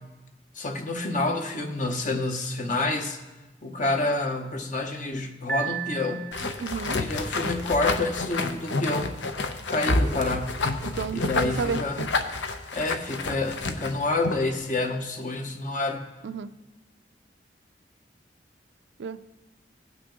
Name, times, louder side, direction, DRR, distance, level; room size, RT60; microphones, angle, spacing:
voice 1, 0.5-3.2 3.6-6.3 7.0-9.1 9.6-10.6 11.1-12.0 12.7-16.1, left 2 dB, 45° left, 5 dB, 0.9 m, -28 dB
Piano, 5.5-6.8, right 7 dB, 5° left, 0.7 m, -33 dB
sound 1, 6.3-14.5, left 3 dB, 85° left, 0.7 m, -29 dB
voice 2, 6.6-7.0 10.8-12.1 16.2-16.5 19.0-19.3, right 5 dB, 75° right, 13 dB, 0.4 m, -31 dB
17.5 x 6.0 x 3.8 m, 1.1 s
head